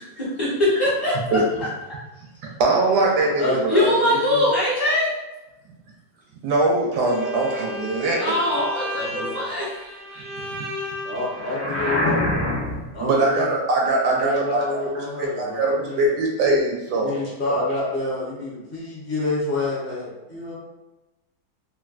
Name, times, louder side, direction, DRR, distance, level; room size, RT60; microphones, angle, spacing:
voice 1, 0.0-1.7 3.7-5.1 8.2-10.5, left 1 dB, 25° left, -11 dB, 0.6 m, -23 dB
voice 2, 2.6-3.8 6.4-8.3 13.0-14.8 15.2-17.1 17.5-17.6, right 2 dB, 75° right, -1 dB, 1.1 m, -21 dB
voice 3, 3.2-4.4 8.9-9.4 11.0-12.2 12.9-13.6 14.0-16.1 16.9-20.6, left 2 dB, 50° left, -6 dB, 0.8 m, -28 dB
Bowed string instrument, 7.0-11.7, left 1 dB, 45° right, 0.6 m, -34 dB
sound 1, 11.4-13.0, left 1 dB, 85° left, 0.4 m, -24 dB
3.2 x 2.4 x 2.4 m, 1.0 s
omnidirectional pair, 2.0 m